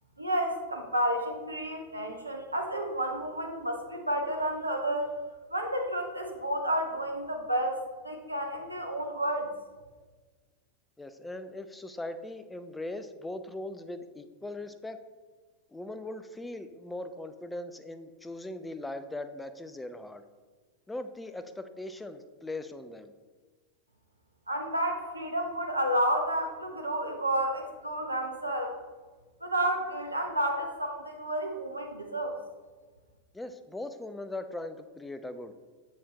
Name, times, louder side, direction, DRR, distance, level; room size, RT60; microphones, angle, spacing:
voice 1, 0.2-5.1 5.5-9.5 24.5-28.8 29.4-32.4, right 1 dB, 85° right, 3 dB, 0.9 m, -31 dB
voice 2, 11.0-15.0 15.7-20.2 20.9-23.1 33.3-35.5, left 2 dB, 5° left, 9 dB, 0.5 m, -40 dB
7.3 x 4.7 x 4.1 m, 1.4 s
figure-of-eight pair, 90°, 0 cm